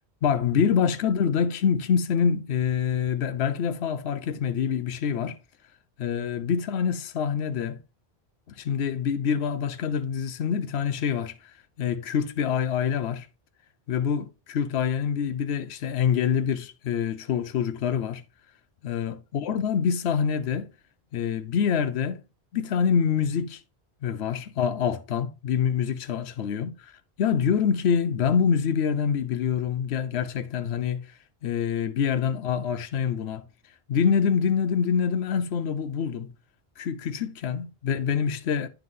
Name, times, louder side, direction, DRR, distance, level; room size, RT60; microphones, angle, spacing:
voice 1, 0.2-5.4 6.0-7.8 8.6-11.3 11.8-13.3 13.9-18.2 18.8-20.7 21.1-22.2 22.5-23.6 24.0-26.9 27.2-31.0 31.4-33.4 33.9-36.3 36.8-38.7, left 7 dB, 85° left, 0.9 m, -26 dB
9.3 x 4.6 x 3.7 m
omnidirectional pair, 1.1 m